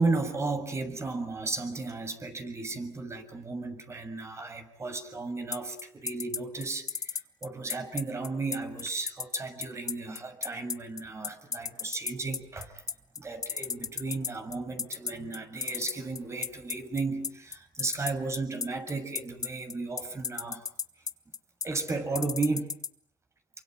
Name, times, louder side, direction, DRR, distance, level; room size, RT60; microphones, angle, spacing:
voice 1, 0.0-12.8 13.2-20.7 21.6-22.7, right 3 dB, 25° right, 7 dB, 6.7 m, -34 dB
sound 1, 5.5-22.9, left 6 dB, 35° left, 1.2 m, -33 dB
28.0 x 24.0 x 7.7 m, 0.67 s
supercardioid pair, 80°, 10 cm